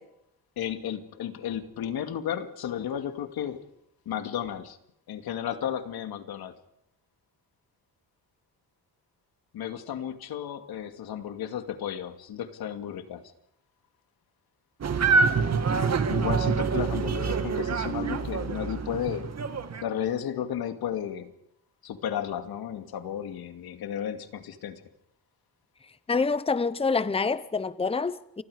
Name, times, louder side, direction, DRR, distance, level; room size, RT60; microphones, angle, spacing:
voice 1, 0.6-3.6 4.1-4.8 5.1-6.6 9.5-13.2 16.1-19.2 19.8-21.3 21.8-24.8, left 9 dB, 90° left, 2.4 m, -33 dB
sound 1, 14.8-19.8, right 5 dB, 45° right, 2.3 m, -26 dB
voice 2, 26.1-28.4, left 4 dB, 15° left, 0.9 m, -26 dB
29.5 x 25.0 x 5.1 m
cardioid pair, 115°, 36 cm